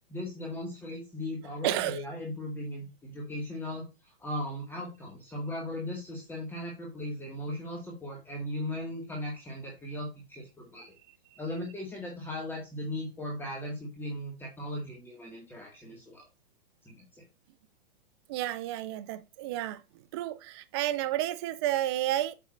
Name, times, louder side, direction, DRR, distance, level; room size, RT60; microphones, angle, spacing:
voice 1, 0.1-10.9 11.4-16.3 16.8-17.2, left 1 dB, 5° left, 1.7 m, -38 dB
voice 2, 1.6-2.0 18.3-19.8 20.1-22.3, right 14 dB, 25° right, 0.4 m, -31 dB
7.5 x 7.0 x 2.5 m
hypercardioid pair, 150°, 31 cm